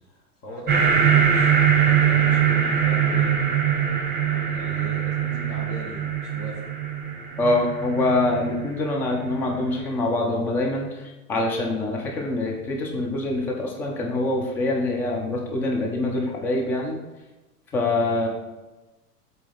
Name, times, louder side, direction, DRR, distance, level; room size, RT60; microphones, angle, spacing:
voice 1, 0.1-3.3 4.3-6.6, left 1 dB, 30° left, -5 dB, 2.0 m, -39 dB
sound 1, 0.7-9.6, right 8 dB, 20° right, 1.7 m, -22 dB
voice 2, 7.4-11.0 11.3-17.0 17.7-18.3, left 2 dB, 5° left, 0 dB, 0.3 m, -25 dB
7.4 x 4.0 x 5.4 m, 1.1 s
figure-of-eight pair, 95°, 46 cm